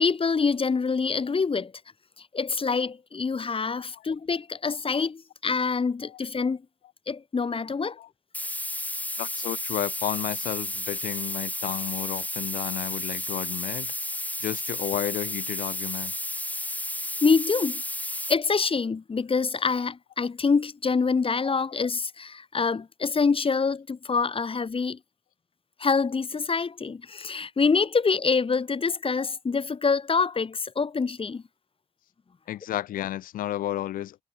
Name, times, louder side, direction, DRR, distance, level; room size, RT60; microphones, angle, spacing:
voice 1, 0.0-1.7 2.3-6.6 7.1-8.0 17.2-17.8 18.3-25.0 25.8-31.4, left 5 dB, 40° left, 1.2 m, -25 dB
sound 1, 8.3-18.3, left 1 dB, 10° left, 2.9 m, -32 dB
voice 2, 9.2-16.1 32.5-34.2, left 13 dB, 85° left, 4.1 m, -32 dB
supercardioid pair, 40°, 14 cm